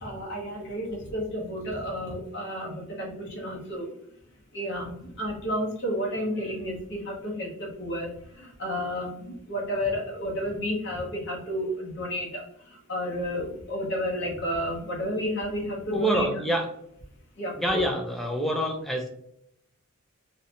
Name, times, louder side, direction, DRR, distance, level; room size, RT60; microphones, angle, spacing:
voice 1, 0.0-3.9 4.5-16.3 17.4-17.8, equal, 55° left, -2 dB, 0.7 m, -31 dB
voice 2, 15.9-16.7 17.5-19.1, right 1 dB, ahead, 1 dB, 0.3 m, -26 dB
2.6 x 2.1 x 2.7 m, 0.72 s
head